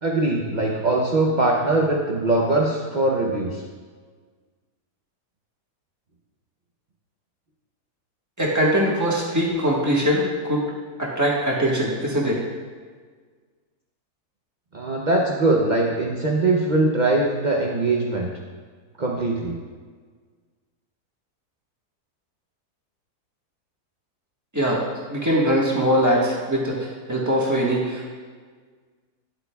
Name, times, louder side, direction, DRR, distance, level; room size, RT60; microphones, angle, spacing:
voice 1, 0.0-3.6 14.7-18.3 19.0-19.6, right 2 dB, 55° right, -2 dB, 0.5 m, -21 dB
voice 2, 8.4-10.6 11.0-12.4 24.5-24.8 25.1-28.0, equal, 10° right, -4 dB, 1.3 m, -22 dB
10.5 x 8.0 x 2.3 m, 1.6 s
omnidirectional pair, 1.8 m